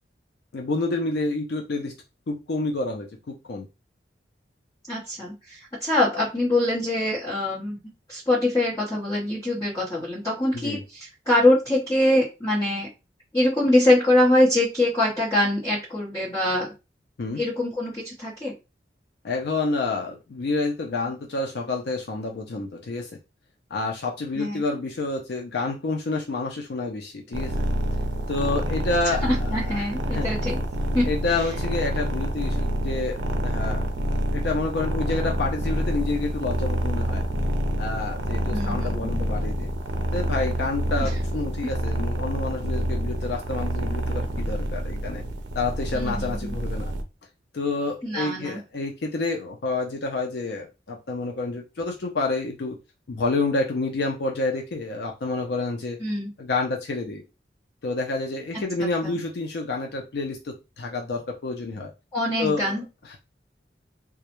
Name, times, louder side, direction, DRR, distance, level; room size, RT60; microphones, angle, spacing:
voice 1, 0.5-1.9 2.3-3.7 10.5-10.8 17.2-17.4 19.2-23.1 23.7-27.7 28.3-30.3 31.0-33.8 34.3-37.2 37.8-39.7 40.1-45.2 45.6-46.9 47.5-52.8 53.1-56.0 56.4-57.2 57.8-61.9 62.4-62.7 63.0-63.2, left 3 dB, 65° left, 1 dB, 0.4 m, -29 dB
voice 2, 4.9-7.8 8.1-10.8 11.3-12.9 13.3-16.7 17.4-18.5 24.4-24.6 29.2-30.6 30.9-31.1 38.5-39.1 40.9-41.1 45.9-46.5 48.0-48.6 56.0-56.3 59.0-59.2 62.1-62.8, left 1 dB, 20° left, -11 dB, 1.0 m, -23 dB
sound 1, 27.3-47.0, equal, 90° right, 0.5 m, -27 dB
2.3 x 2.1 x 2.9 m, 0.27 s
head